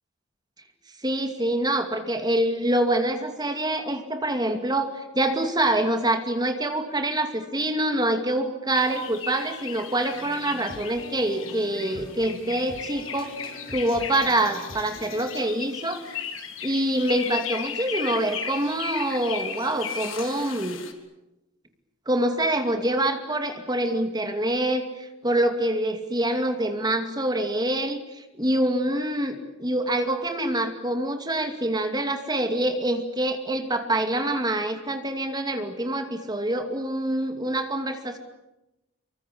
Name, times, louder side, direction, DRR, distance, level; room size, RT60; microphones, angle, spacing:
voice 1, 1.0-13.3 13.7-16.3 16.6-20.8 22.1-38.2, right 1 dB, 20° right, 7 dB, 2.5 m, -26 dB
sound 1, 8.7-20.9, left 7 dB, 80° left, 3.5 m, -36 dB
sound 2, 10.1-15.4, left 1 dB, 45° left, 7.4 m, -44 dB
26.5 x 24.5 x 8.4 m, 0.96 s
head